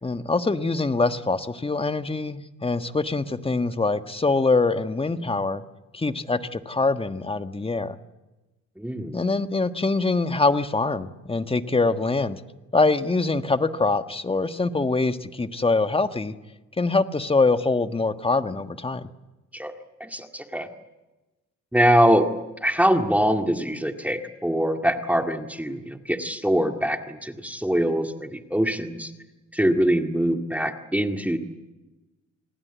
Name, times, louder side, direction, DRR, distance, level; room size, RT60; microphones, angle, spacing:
voice 1, 0.0-5.6 5.9-8.0 9.1-12.4 12.7-16.3 16.8-19.1, left 3 dB, 20° left, 9 dB, 1.5 m, -24 dB
voice 2, 8.8-9.2 19.5-19.7 20.0-20.7 21.7-22.3 22.6-29.1 29.5-31.4, equal, 5° right, 5 dB, 2.1 m, -23 dB
28.0 x 20.0 x 8.2 m, 1.1 s
cardioid pair, 90°, 30 cm